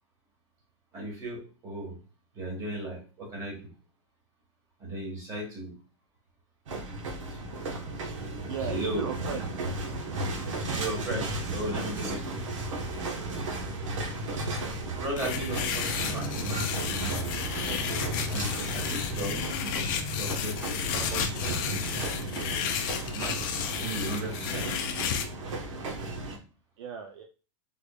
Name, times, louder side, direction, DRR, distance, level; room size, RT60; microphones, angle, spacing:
voice 1, 0.9-2.0 2.3-3.7 4.8-5.7 7.3-7.4 8.7-9.1 10.6-12.4 15.0-16.6 18.3-21.9 23.1-23.4 23.7-24.7, right 1 dB, 20° right, -1 dB, 1.3 m, -36 dB
sound 1, 6.7-26.4, right 2 dB, 75° right, 1.0 m, -35 dB
voice 2, 8.5-9.4 22.3-22.4 22.9-23.1 25.7-25.9 26.8-27.2, right 7 dB, 55° right, 4 dB, 0.4 m, -37 dB
sound 2, 11.3-23.7, equal, ahead, 0.7 m, -40 dB
sound 3, 15.2-25.2, left 8 dB, 40° left, 0.5 m, -33 dB
3.5 x 3.3 x 2.2 m, 0.35 s
supercardioid pair, 155°, 16 cm